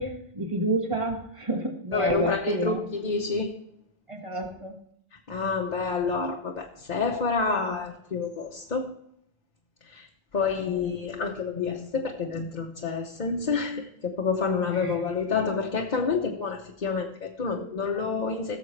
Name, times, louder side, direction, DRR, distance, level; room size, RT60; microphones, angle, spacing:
voice 1, 0.0-2.8 4.1-4.8 10.8-10.9 14.7-14.9, right 1 dB, 30° right, 3 dB, 1.5 m, -29 dB
voice 2, 1.9-3.5 5.3-8.9 9.8-10.1 10.3-18.6, left 4 dB, 50° left, 1 dB, 0.9 m, -28 dB
17.5 x 7.0 x 3.2 m, 0.73 s
omnidirectional pair, 1.0 m